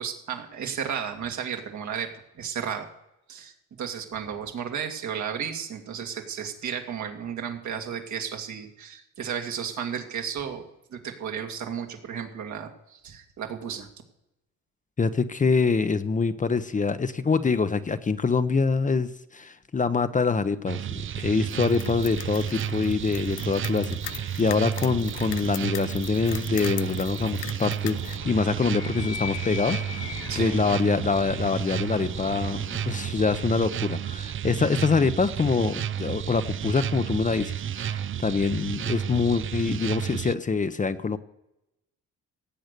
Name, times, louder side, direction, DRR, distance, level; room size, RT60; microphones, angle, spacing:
voice 1, 0.0-2.1 2.4-2.9 3.3-13.9 30.3-30.6, right 7 dB, 70° right, 3 dB, 2.2 m, -33 dB
voice 2, 15.0-41.2, left 4 dB, 25° left, 11 dB, 0.8 m, -25 dB
sound 1, 20.7-40.3, right 9 dB, 45° right, 0.5 m, -32 dB
sound 2, 21.5-28.2, left 16 dB, 85° left, 0.5 m, -41 dB
Animal, 27.8-33.7, left 7 dB, 55° left, 1.2 m, -40 dB
17.0 x 7.8 x 6.7 m, 0.89 s
cardioid pair, 90°, 30 cm